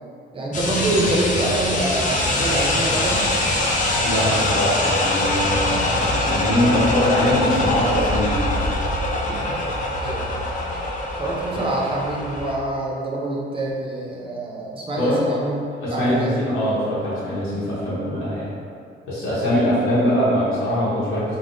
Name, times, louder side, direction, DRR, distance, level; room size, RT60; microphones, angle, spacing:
voice 1, 0.3-3.3 10.0-10.4 11.2-15.6 15.9-16.4, right 2 dB, 25° right, -3 dB, 0.5 m, -25 dB
sound 1, 0.5-12.5, left 1 dB, 40° left, 0.4 m, -23 dB
voice 2, 4.0-8.7 15.0-15.2 15.8-18.5 19.1-21.3, equal, 85° left, -9 dB, 0.9 m, -22 dB
3.3 x 2.0 x 2.6 m, 2.3 s
cardioid pair, 115°, 20 cm